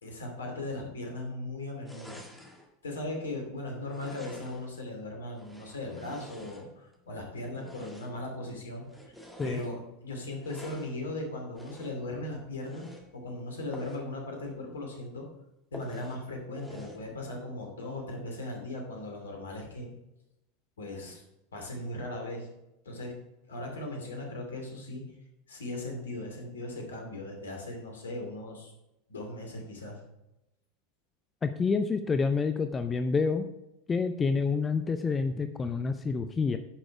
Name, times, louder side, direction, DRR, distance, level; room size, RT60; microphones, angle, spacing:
voice 1, 0.0-2.2 2.8-9.2 9.4-15.3 15.7-19.9 20.8-21.2 21.5-22.5 22.8-23.1 23.5-25.1 25.5-28.7 29.1-30.0, left 2 dB, 75° left, 1 dB, 2.6 m, -38 dB
sound 1, 1.8-2.7 3.8-4.8 5.3-7.0 7.6-8.3 8.8-9.7 10.4-11.0 11.5-12.1 12.6-13.1 13.7-14.1 14.5-14.6 14.9-15.0 15.7-16.2 16.6-17.1, equal, ahead, 1.9 m, -48 dB
voice 2, 31.4-33.5 33.9-36.6, left 4 dB, 20° left, 8 dB, 0.6 m, -28 dB
10.0 x 6.2 x 4.7 m, 0.89 s
figure-of-eight pair, 85°, 0 cm